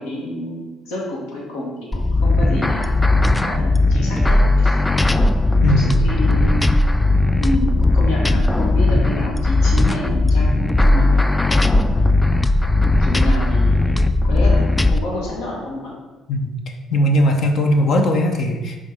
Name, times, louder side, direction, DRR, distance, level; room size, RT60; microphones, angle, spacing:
voice 1, 0.0-3.0 3.4-4.8 5.7-6.8 7.4-11.3 13.0-16.0, left 1 dB, 75° left, -4 dB, 1.5 m, -29 dB
sound 1, 1.9-15.0, left 2 dB, 15° left, 0.3 m, -17 dB
voice 2, 5.6-6.0 16.3-16.5 16.9-18.8, equal, 60° left, 4 dB, 0.9 m, -18 dB
5.1 x 3.8 x 5.2 m, 1.2 s
hypercardioid pair, 55°, 0 cm